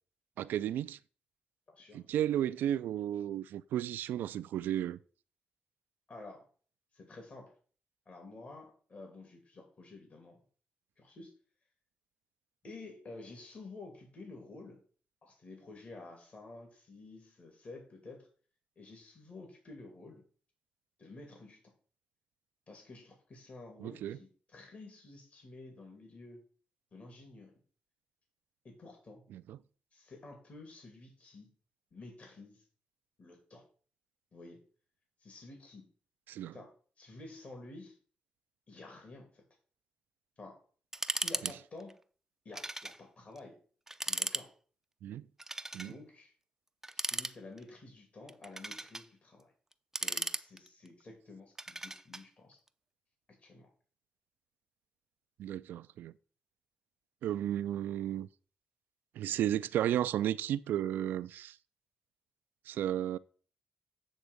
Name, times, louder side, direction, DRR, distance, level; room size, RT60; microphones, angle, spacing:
voice 1, 0.4-1.0 1.9-5.0 23.8-24.2 29.3-29.6 36.3-36.5 45.0-45.2 45.7-45.9 55.4-56.1 57.2-58.3 59.2-61.5 62.7-63.2, right 11 dB, 85° right, 0.3 m, -33 dB
voice 2, 1.7-2.0 6.1-6.5 6.9-7.5 8.1-10.4 11.0-11.3 12.6-14.8 15.2-18.3 18.8-20.2 21.0-21.7 22.7-26.4 26.9-27.5 28.6-29.2 29.9-31.5 31.9-32.6 33.2-33.6 34.3-34.6 35.2-35.9 36.5-38.0 38.7-39.4 40.4-40.6 41.1-42.0 42.4-43.6 44.0-44.5 45.8-46.3 46.9-49.5 50.0-52.6 53.4-53.7, left 2 dB, 45° left, 2.5 m, -51 dB
sound 1, 40.9-41.5 41.8-41.9 42.5-43.0 43.4-43.5 43.9-44.5 45.4-45.9 46.8-47.7 48.3-49.1 49.7-50.9 51.6-52.2, right 2 dB, 10° right, 0.5 m, -37 dB
8.2 x 3.6 x 6.5 m
cardioid pair, 75°, 3 cm